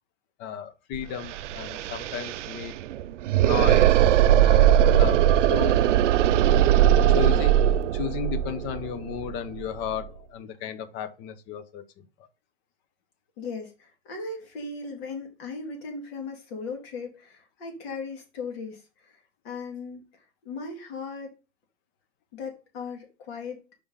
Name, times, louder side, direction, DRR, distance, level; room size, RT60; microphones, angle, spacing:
voice 1, 0.4-2.8 3.4-5.8 7.1-7.6 7.9-12.0, left 9 dB, 30° left, 0.6 m, -34 dB
sound 1, 0.9-1.0 1.2-10.0, right 11 dB, 85° right, 0.5 m, -20 dB
voice 2, 13.4-19.2 19.4-20.0 20.4-21.3 22.3-23.6, left 4 dB, 55° left, 2.4 m, -37 dB
5.0 x 3.5 x 5.4 m
hypercardioid pair, 135°, 36 cm